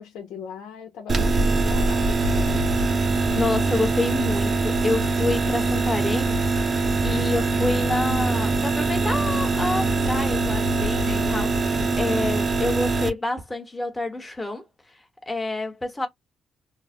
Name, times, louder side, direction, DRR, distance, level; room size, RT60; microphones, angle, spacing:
voice 1, 0.0-2.2, left 7 dB, 85° left, 0.7 m, -39 dB
sound 1, 1.1-13.1, right 3 dB, 40° right, 0.6 m, -23 dB
voice 2, 3.1-6.7 7.0-14.6 15.3-16.1, left 2 dB, 10° left, 1.0 m, -28 dB
4.0 x 2.0 x 2.4 m
cardioid pair, 90°, 0 cm